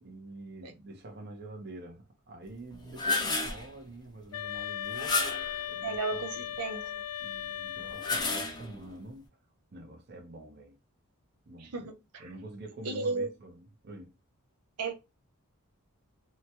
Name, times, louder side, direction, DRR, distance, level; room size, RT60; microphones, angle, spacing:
voice 1, 0.0-5.2 5.7-6.6 7.2-9.2 9.7-10.7 11.5-11.9 12.2-14.1, right 2 dB, 50° right, 0.7 m, -46 dB
sound 1, 2.7-3.7 4.9-5.6 7.8-8.9, left 3 dB, 20° left, 0.5 m, -31 dB
sound 2, 4.3-8.5, left 11 dB, 75° left, 0.3 m, -38 dB
voice 2, 5.8-6.9 11.7-12.2 12.8-13.3 14.8-14.9, right 3 dB, 90° right, 0.7 m, -33 dB
2.8 x 2.3 x 2.8 m
head